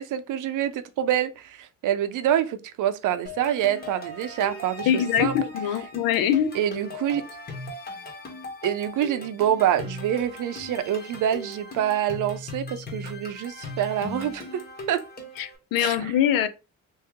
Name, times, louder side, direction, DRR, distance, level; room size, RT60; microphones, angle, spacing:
voice 1, 0.0-5.3 6.5-7.2 8.6-14.6 14.9-15.0 15.8-16.1, right 10 dB, 65° right, 0.6 m, -26 dB
sound 1, 3.3-15.6, left 2 dB, 30° left, 1.3 m, -39 dB
voice 2, 4.9-6.5 15.4-16.5, left 9 dB, 85° left, 0.6 m, -23 dB
3.1 x 2.8 x 3.6 m
cardioid pair, 110°, 33 cm